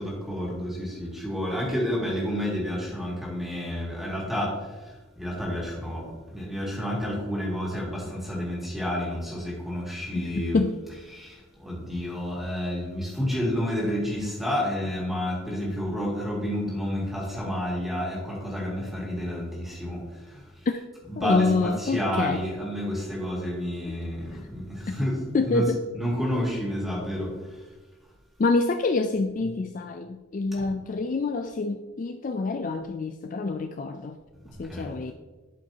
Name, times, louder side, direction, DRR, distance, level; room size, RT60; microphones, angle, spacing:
voice 1, 0.0-10.6 11.1-20.7 21.1-27.6 30.5-30.7 34.4-34.9, equal, ahead, -5 dB, 2.2 m, -30 dB
voice 2, 10.2-10.7 21.2-22.4 23.9-24.0 24.9-25.0 25.3-25.8 28.4-34.2 34.6-35.1, left 3 dB, 40° left, 7 dB, 0.3 m, -27 dB
11.5 x 5.2 x 2.8 m, 1.3 s
head